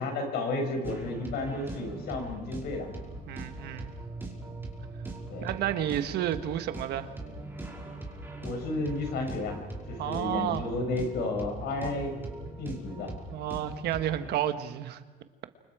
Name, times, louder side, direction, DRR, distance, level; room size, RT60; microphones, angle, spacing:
voice 1, 0.0-2.9 5.3-5.5 8.4-9.6 9.9-12.2 12.6-13.1, left 2 dB, 75° left, 3 dB, 6.6 m, -32 dB
sound 1, 0.8-14.3, right 2 dB, 15° right, 5.5 m, -41 dB
voice 2, 3.3-3.9 5.4-7.1 10.0-10.7 13.3-15.0, right 11 dB, 75° right, 9 dB, 1.4 m, -31 dB
29.5 x 25.5 x 4.9 m, 1.3 s
cardioid pair, 110°, 17 cm